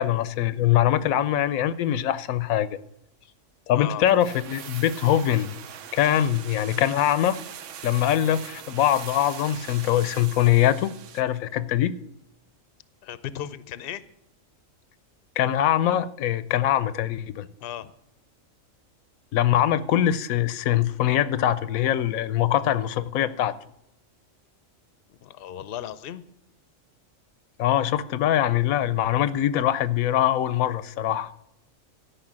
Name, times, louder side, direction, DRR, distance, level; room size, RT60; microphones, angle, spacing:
voice 1, 0.0-2.8 3.7-5.6 5.9-7.4 7.8-11.9 15.4-17.5 19.3-23.5 27.6-31.3, left 11 dB, 90° left, 15 dB, 1.1 m, -23 dB
sound 1, 4.1-11.4 11.6-11.7, right 9 dB, 65° right, 1.0 m, -41 dB
voice 2, 13.0-14.0 17.6-17.9 25.2-26.2, left 11 dB, 55° left, 15 dB, 0.7 m, -36 dB
13.5 x 5.6 x 8.6 m, 0.82 s
omnidirectional pair, 1.4 m